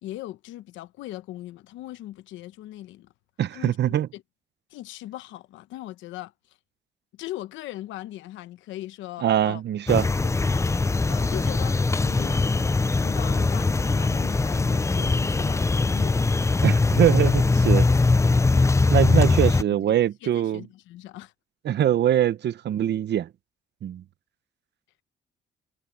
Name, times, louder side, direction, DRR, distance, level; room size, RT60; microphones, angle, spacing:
voice 1, 0.0-3.1 3.5-4.2 4.7-6.6 7.1-9.6 11.1-11.8 12.0-16.3 19.2-19.3 19.7-21.3, left 15 dB, 85° left, 1.0 m, -39 dB
voice 2, 3.4-4.1 9.2-10.1 16.6-17.9 18.9-20.6 21.6-23.3 23.8-24.0, right 11 dB, 65° right, 1.0 m, -23 dB
sound 1, 9.9-19.6, left 3 dB, 15° left, 0.5 m, -21 dB
cardioid pair, 75°, 19 cm